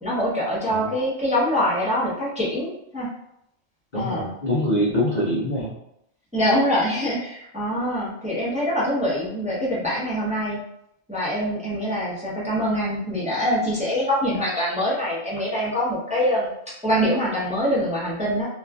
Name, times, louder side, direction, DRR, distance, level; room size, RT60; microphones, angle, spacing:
voice 1, 0.0-3.1 3.9-4.3 6.3-10.6 11.1-18.5, equal, 5° right, -8 dB, 0.6 m, -24 dB
voice 2, 3.9-5.8, left 1 dB, 55° left, -5 dB, 0.5 m, -24 dB
2.9 x 2.4 x 2.3 m, 0.80 s
omnidirectional pair, 1.3 m